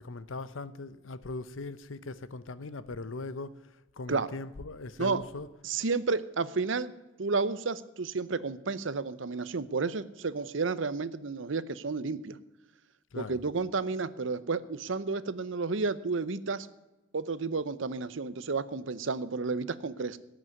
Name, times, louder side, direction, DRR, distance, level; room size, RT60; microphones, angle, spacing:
voice 1, 0.0-5.5 13.1-13.4, left 3 dB, 90° left, 0.8 m, -40 dB
voice 2, 5.6-6.9 7.2-12.4 13.2-16.7 17.1-20.2, right 4 dB, 80° right, 0.7 m, -31 dB
17.0 x 6.2 x 9.5 m
head